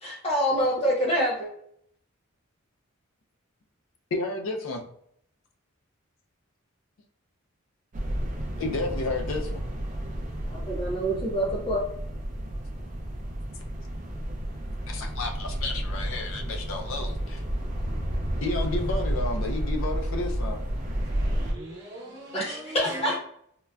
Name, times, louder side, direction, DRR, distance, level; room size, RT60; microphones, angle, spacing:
voice 1, 0.0-1.5 10.4-11.8 22.3-23.2, equal, 25° left, 0.8 m, -26 dB
voice 2, 4.1-4.8 8.6-9.6 14.9-17.4 18.4-20.6, left 2 dB, 65° left, 0.4 m, -31 dB
sound 1, 7.9-21.5, right 1 dB, 35° right, 0.4 m, -31 dB
voice 3, 21.0-23.2, right 1 dB, 50° right, 0.8 m, -39 dB
3.7 x 2.1 x 2.2 m
head